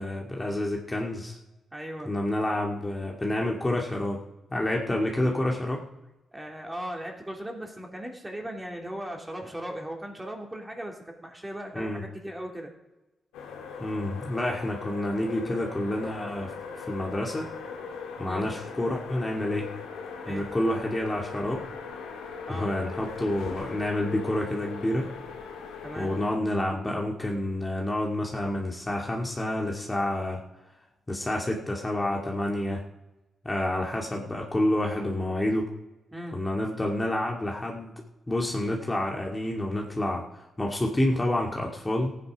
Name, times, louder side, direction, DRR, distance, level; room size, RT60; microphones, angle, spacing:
voice 1, 0.0-1.4 2.1-4.2 4.5-5.8 11.7-12.0 13.8-17.5 18.2-19.7 20.3-21.6 22.5-25.1 26.0-30.4 31.1-32.8 33.4-35.7 36.3-37.9 38.3-42.1, left 1 dB, 25° left, -1 dB, 2.1 m, -28 dB
voice 2, 1.7-2.1 6.3-12.7 18.2-18.5 20.2-20.5 22.5-22.7 25.8-26.1 36.1-36.4, right 1 dB, 15° right, 0 dB, 3.2 m, -38 dB
sound 1, 13.3-26.3, left 5 dB, 85° left, 1.6 m, -40 dB
15.0 x 9.3 x 5.1 m, 1.0 s
supercardioid pair, 45°, 0 cm